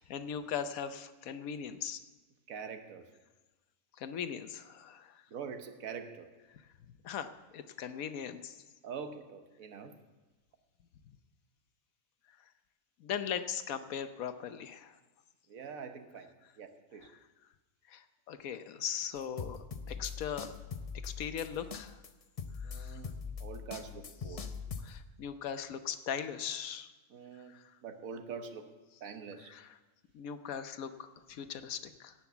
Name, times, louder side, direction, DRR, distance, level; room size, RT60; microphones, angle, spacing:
voice 1, 0.0-2.0 4.0-5.3 6.5-6.6 7.0-8.6 13.0-15.0 17.0-17.2 17.9-20.5 21.0-22.0 22.6-23.0 24.3-24.5 24.8-26.9 27.5-27.7 29.4-29.8 30.1-32.1, left 8 dB, 80° left, 10 dB, 1.2 m, -39 dB
voice 2, 2.5-3.1 5.3-6.3 8.8-9.9 15.5-16.3 16.6-17.1 22.6-24.5 27.1-28.7 29.0-29.5, right 6 dB, 75° right, 7 dB, 1.4 m, -44 dB
sound 1, 19.1-25.0, left 5 dB, 45° left, 0.4 m, -42 dB
17.0 x 5.9 x 7.0 m, 1.2 s
omnidirectional pair, 1.5 m